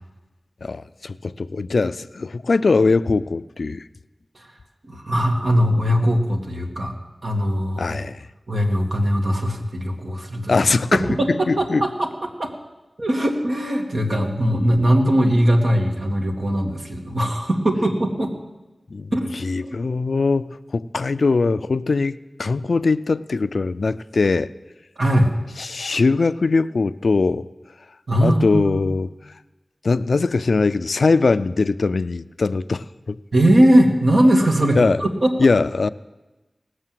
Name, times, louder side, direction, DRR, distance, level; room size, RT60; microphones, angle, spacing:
voice 1, 0.6-3.8 7.8-8.3 10.5-11.0 11.5-11.8 18.9-19.1 19.4-24.5 25.6-27.5 28.2-29.1 29.8-33.2 34.7-35.0 35.4-35.9, left 3 dB, 85° left, 0.3 m, -21 dB
voice 2, 4.9-6.9 7.2-8.0 8.5-10.7 10.9-12.5 13.0-18.3 19.1-19.8 25.0-25.3 28.1-28.9 33.3-35.3, equal, 75° right, 1.8 m, -20 dB
18.5 x 6.5 x 7.6 m
wide cardioid pair, 45°, 0 cm